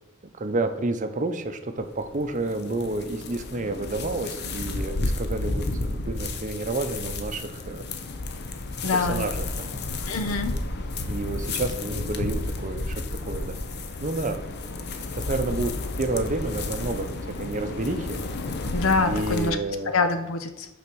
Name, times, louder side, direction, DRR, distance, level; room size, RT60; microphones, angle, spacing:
voice 1, 0.4-7.9 8.9-9.8 11.1-13.5 14.0-14.4 14.9-15.7 16.0-17.1 17.4-18.2 19.1-19.9, right 2 dB, 40° right, 7 dB, 0.6 m, -30 dB
sound 1, 1.8-19.5, left 2 dB, 55° left, 0.7 m, -32 dB
voice 2, 8.8-9.3 10.1-10.5 18.7-19.6 19.9-20.7, left 3 dB, 85° left, 8 dB, 0.8 m, -25 dB
5.8 x 4.2 x 6.1 m, 1.0 s
head